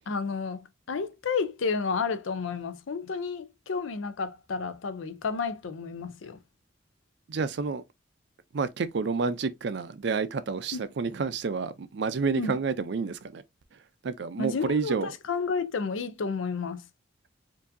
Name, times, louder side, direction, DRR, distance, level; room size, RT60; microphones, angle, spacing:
voice 1, 0.1-6.4 10.7-10.8 12.4-12.6 14.4-16.9, left 4 dB, 85° left, 0.6 m, -31 dB
voice 2, 7.3-7.8 8.5-13.4 14.0-15.1, right 4 dB, 60° right, 0.4 m, -29 dB
4.5 x 2.6 x 2.6 m
head